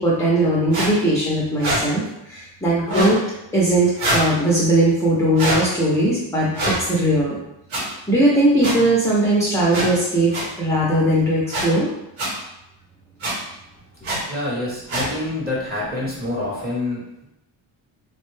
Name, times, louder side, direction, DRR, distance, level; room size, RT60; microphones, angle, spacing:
voice 1, 0.0-3.2 3.5-6.5 6.8-7.4 8.1-10.3 10.6-11.9, right 1 dB, 5° left, -6 dB, 0.4 m, -19 dB
sound 1, 0.7-0.9 1.6-1.8 2.8-3.2 4.0-4.3 5.4-5.6 6.5-6.8 7.7-7.8 8.6-8.7 9.7-9.9 10.3-10.4 11.5-11.7 12.2-12.3 13.2-13.3 14.0-14.2 14.9-15.1, right 1 dB, 85° right, 1.2 m, -23 dB
voice 2, 14.2-17.2, left 2 dB, 20° right, -5 dB, 0.9 m, -27 dB
3.6 x 2.1 x 3.1 m, 0.87 s
wide cardioid pair, 170°, 48 cm